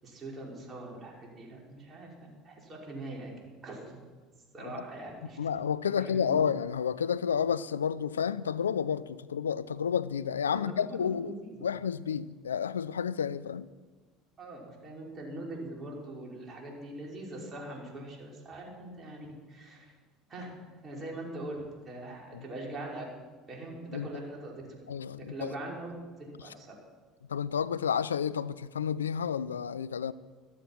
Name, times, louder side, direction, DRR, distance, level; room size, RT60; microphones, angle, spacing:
voice 1, 0.0-3.3 3.6-4.0 4.5-5.4 5.9-6.4 10.5-11.6 14.4-19.9 20.3-20.5 20.8-23.0 23.5-24.7 25.1-25.9 26.2-26.7, right 2 dB, 35° right, 5.3 m, -42 dB
voice 2, 5.4-11.3 11.6-13.7 22.3-22.4 23.9-24.1 24.9-25.3 27.3-30.1, left 7 dB, 85° left, 0.4 m, -30 dB
14.5 x 13.0 x 6.1 m
hypercardioid pair, 70°, 0 cm